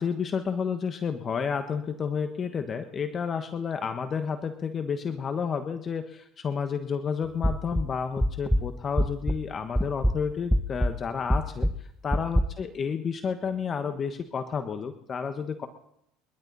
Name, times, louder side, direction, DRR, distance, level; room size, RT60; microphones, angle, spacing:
voice 1, 0.0-15.7, left 6 dB, 35° left, 8 dB, 1.3 m, -31 dB
sound 1, 7.4-9.5 9.8-12.4, equal, ahead, 0.8 m, -26 dB
28.5 x 12.0 x 4.1 m, 0.74 s
supercardioid pair, 115°, 0 cm